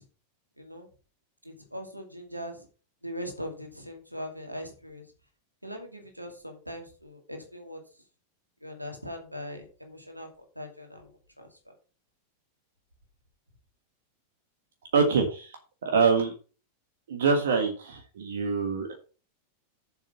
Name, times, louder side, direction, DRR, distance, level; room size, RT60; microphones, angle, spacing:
voice 1, 1.4-2.6 3.0-5.0 5.6-7.8 8.6-10.3 10.6-11.0 11.4-11.5, equal, 90° right, 3 dB, 2.5 m, -40 dB
voice 2, 14.9-16.3 17.1-18.9, right 5 dB, 60° right, 4 dB, 1.7 m, -25 dB
7.7 x 7.3 x 5.8 m, 0.36 s
figure-of-eight pair, 90°, 0 cm